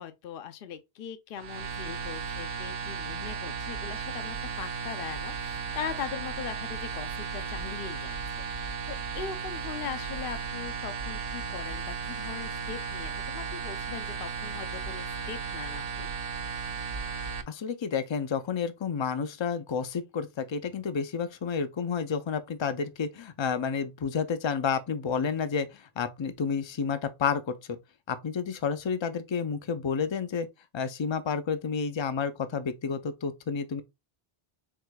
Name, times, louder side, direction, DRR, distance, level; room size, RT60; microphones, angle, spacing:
voice 1, 0.0-16.4, left 8 dB, 65° left, 0.8 m, -40 dB
sound 1, 1.4-17.4, right 5 dB, 45° right, 0.6 m, -35 dB
voice 2, 17.5-27.8 28.1-30.5 30.7-33.8, left 6 dB, 35° left, 0.5 m, -30 dB
4.8 x 3.7 x 2.2 m
omnidirectional pair, 1.0 m